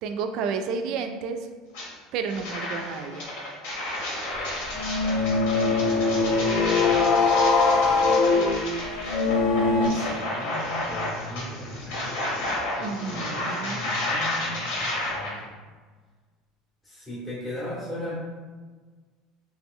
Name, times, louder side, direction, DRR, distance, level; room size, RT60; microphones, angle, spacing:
voice 1, 0.0-1.5 2.1-3.3 12.8-13.9, right 5 dB, 45° right, 7 dB, 0.3 m, -31 dB
sound 1, 1.7-1.9 2.3-15.3, left 1 dB, 70° left, 1.1 m, -31 dB
sound 2, 4.7-9.9, left 4 dB, 50° left, 0.4 m, -22 dB
voice 2, 5.8-6.5 6.9-7.4 7.8-8.3 9.5-12.2 12.8-15.5 16.8-18.1, equal, 5° left, -9 dB, 0.7 m, -38 dB
3.2 x 3.0 x 3.6 m, 1.4 s
cardioid pair, 180°, 0 cm